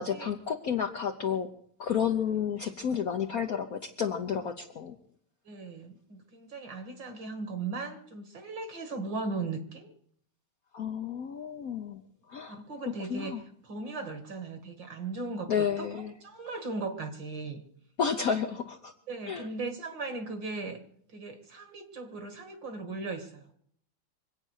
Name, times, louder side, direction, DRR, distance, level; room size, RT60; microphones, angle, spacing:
voice 1, 0.0-1.5 1.8-5.0 10.7-12.0 12.3-12.6 13.1-13.4 15.5-16.1 18.0-18.9 19.3-19.5, left 7 dB, 60° left, 5 dB, 0.9 m, -31 dB
voice 2, 5.5-9.9 12.5-17.6 19.1-20.8 21.1-23.5, right 3 dB, 55° right, 8 dB, 2.4 m, -38 dB
24.5 x 8.8 x 6.5 m, 0.65 s
omnidirectional pair, 2.4 m